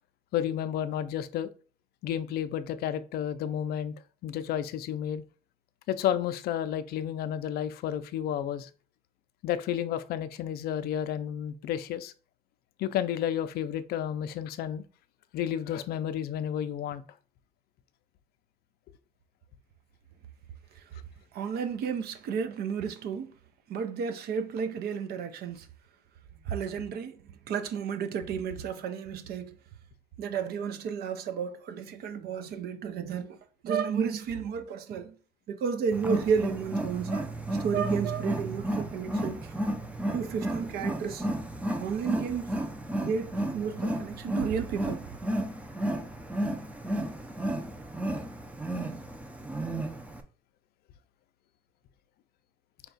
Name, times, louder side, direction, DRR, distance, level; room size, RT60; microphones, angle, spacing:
voice 1, 0.3-1.5 2.0-3.9 4.2-5.2 5.9-8.7 9.4-12.1 12.8-14.8 15.3-17.0, left 10 dB, 65° left, 0.4 m, -31 dB
voice 2, 21.3-23.3 23.7-25.7 26.5-27.2 27.5-29.6 30.2-33.4 33.6-35.1 35.5-37.3 37.6-39.5 40.1-41.2 41.8-42.6 43.0-45.0, right 6 dB, 65° right, 0.6 m, -32 dB
Wild animals, 35.9-50.2, right 1 dB, 10° right, 0.5 m, -33 dB
4.5 x 2.3 x 3.9 m
cardioid pair, 110°, 17 cm